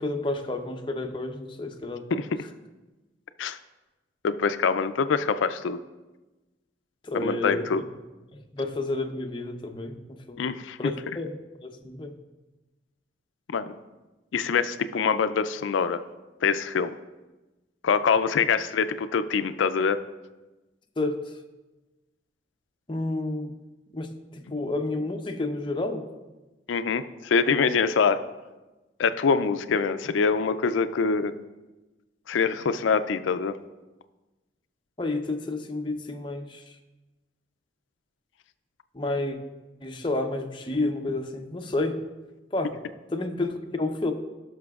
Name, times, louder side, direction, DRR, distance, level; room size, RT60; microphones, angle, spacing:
voice 1, 0.0-2.2 7.0-7.7 8.3-10.5 10.8-11.4 11.6-12.1 21.0-21.3 22.9-23.6 23.9-26.1 35.0-36.8 38.9-39.4 39.8-42.0 42.5-42.8 43.1-44.1, left 2 dB, 25° left, 4 dB, 0.7 m, -30 dB
voice 2, 4.2-5.8 7.1-7.8 10.4-10.8 13.5-13.7 14.3-16.0 16.4-17.0 17.8-20.0 26.7-28.2 29.0-31.3 32.3-33.6, left 5 dB, 85° left, 12 dB, 0.4 m, -24 dB
17.5 x 5.9 x 2.4 m, 1.1 s
head